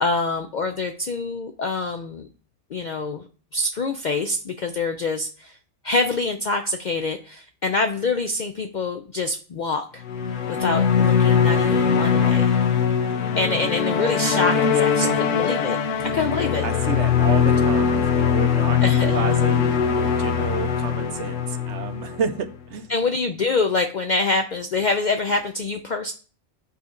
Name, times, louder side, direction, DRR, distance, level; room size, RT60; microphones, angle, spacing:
voice 1, 0.0-2.3 2.7-3.2 3.5-5.5 5.8-10.0 10.6-12.5 13.4-15.8 16.1-16.7 18.8-19.2 22.9-26.1, left 3 dB, 60° left, 6 dB, 0.4 m, -25 dB
sound 1, 10.0-22.5, left 7 dB, 80° left, 1.1 m, -21 dB
voice 2, 16.6-22.9, right 7 dB, 70° right, 8 dB, 1.0 m, -31 dB
8.2 x 4.2 x 3.8 m, 0.40 s
omnidirectional pair, 1.3 m